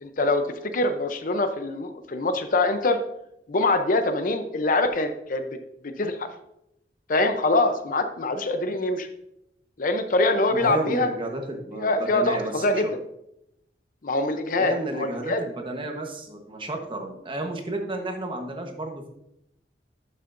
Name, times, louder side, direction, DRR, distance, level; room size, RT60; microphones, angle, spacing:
voice 1, 0.0-3.0 3.5-5.6 5.8-6.3 7.1-9.1 9.8-11.1 11.8-12.9 14.0-15.4, left 2 dB, 50° left, 8 dB, 0.6 m, -24 dB
voice 2, 10.5-12.9 14.6-19.1, right 2 dB, 30° right, 3 dB, 1.1 m, -32 dB
11.5 x 6.5 x 2.6 m, 0.81 s
head